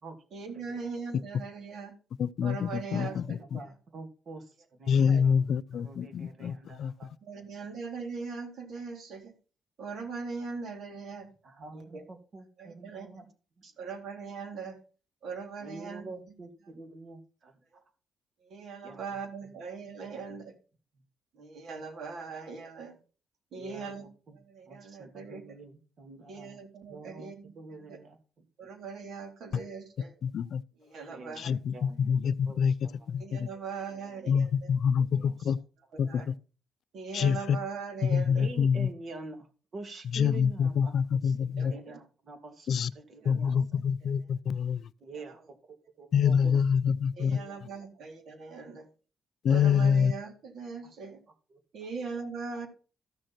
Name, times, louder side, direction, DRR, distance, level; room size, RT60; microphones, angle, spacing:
voice 1, 0.3-1.9 2.4-3.4 5.1-5.2 7.2-9.3 9.8-11.3 11.7-12.0 12.6-13.2 13.8-14.8 15.2-16.2 18.4-20.5 21.3-23.0 23.5-24.1 24.3-25.6 26.3-28.0 28.6-30.1 30.8-31.6 33.2-34.7 35.9-36.3 36.9-38.5 41.6-42.0 43.2-43.4 45.1-45.3 47.2-48.9 49.5-51.2 51.7-52.7, right 5 dB, 65° right, 3.5 m, -40 dB
voice 2, 2.2-3.6 4.9-6.9 29.5-29.6 30.2-30.6 31.4-33.5 34.3-35.6 36.0-36.3 37.1-37.6 38.0-38.9 40.1-41.7 42.7-42.9 43.3-44.8 46.1-47.4 49.4-50.1, left 7 dB, 60° left, 0.5 m, -26 dB
voice 3, 3.0-5.4 5.7-7.4 11.4-13.3 13.6-13.7 15.6-17.5 18.8-19.5 20.1-20.4 23.5-24.4 24.7-26.6 26.9-27.3 27.5-28.5 31.1-31.4 31.7-32.0 32.4-33.1 33.5-33.6 33.9-34.3 35.0-35.5 38.3-41.0 41.2-43.6 45.0-46.5 47.2-47.9 50.8-50.9 51.5-51.6, right 3 dB, 50° right, 2.7 m, -47 dB
14.0 x 6.5 x 4.4 m
cardioid pair, 90°, 0 cm